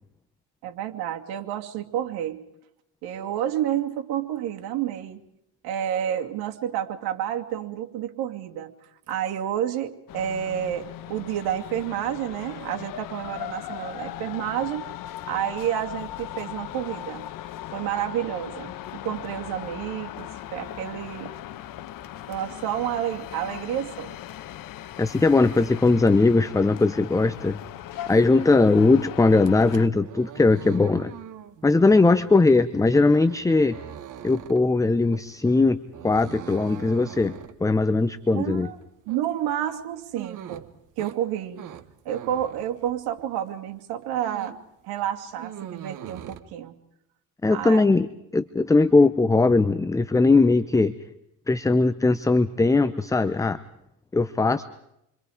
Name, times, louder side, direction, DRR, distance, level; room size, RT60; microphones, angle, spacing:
voice 1, 0.6-2.4 3.0-5.2 5.6-8.7 9.1-14.9 15.2-17.3 17.7-21.3 22.3-24.2 38.3-38.8 39.1-40.7 41.0-41.6 42.0-44.5 44.8-46.7 47.5-47.8, right 10 dB, 85° right, 4 dB, 2.7 m, -30 dB
sound 1, 10.1-29.9, left 13 dB, 65° left, 1.2 m, -38 dB
voice 2, 25.0-27.6 28.1-31.1 31.6-33.8 34.2-37.3 37.6-38.7 47.4-48.1 48.3-50.9 51.5-53.6 54.1-54.6, left 3 dB, 10° left, 12 dB, 0.8 m, -20 dB
sound 2, 29.3-43.4 43.7-44.7 45.0-46.4, right 10 dB, 55° right, 1.8 m, -43 dB
29.0 x 25.0 x 5.0 m, 0.81 s
cardioid pair, 125°, 37 cm